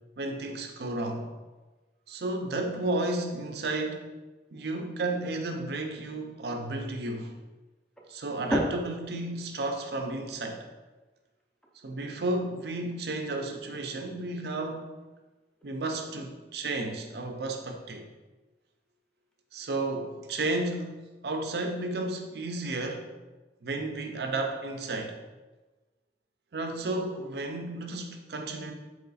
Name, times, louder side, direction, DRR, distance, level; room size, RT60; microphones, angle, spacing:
voice 1, 0.2-1.3 2.1-4.1 4.5-7.3 8.1-10.7 11.8-14.9 15.6-18.0 19.5-23.1 23.6-25.2 26.5-28.7, right 2 dB, 60° right, 4 dB, 0.5 m, -32 dB
sound 1, 1.4-20.8, equal, 5° left, 0.5 m, -43 dB
4.0 x 3.0 x 4.0 m, 1.2 s
head